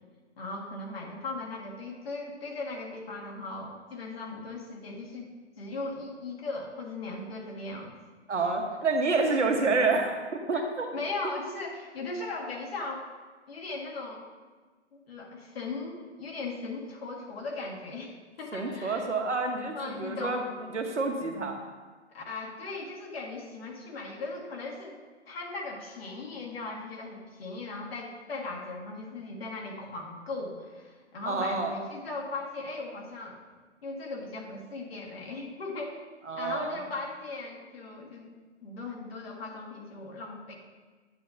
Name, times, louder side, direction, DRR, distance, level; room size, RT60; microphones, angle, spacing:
voice 1, 0.4-5.3 5.6-7.9 10.5-10.6 10.9-13.1 13.5-14.2 14.9-18.1 18.4-19.1 19.7-20.4 22.1-25.0 25.3-33.4 33.8-36.0 36.4-38.3 38.6-40.5, left 3 dB, 55° left, -2 dB, 2.0 m, -38 dB
voice 2, 8.3-10.1 10.5-10.9 18.5-20.4 20.7-21.6 31.3-31.7 36.3-36.8, right 3 dB, 80° right, 3 dB, 1.4 m, -28 dB
9.3 x 7.7 x 2.8 m, 1.4 s
figure-of-eight pair, 140°, 36 cm